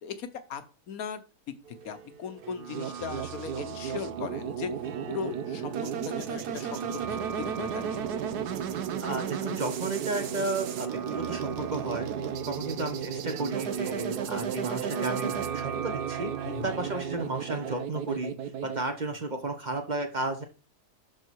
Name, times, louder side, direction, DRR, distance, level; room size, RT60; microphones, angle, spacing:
voice 1, 0.0-1.2 1.8-4.7 5.1-8.3 16.4-17.0, left 7 dB, 65° left, 11 dB, 1.4 m, -38 dB
sound 1, 1.6-17.9, right 7 dB, 50° right, 0.7 m, -40 dB
sound 2, 2.7-18.8, right 7 dB, 80° right, 1.4 m, -34 dB
voice 2, 9.0-12.1 12.4-16.3 16.6-18.3 18.6-20.4, right 2 dB, 30° right, 6 dB, 1.0 m, -33 dB
11.5 x 4.2 x 4.6 m, 0.34 s
omnidirectional pair, 1.7 m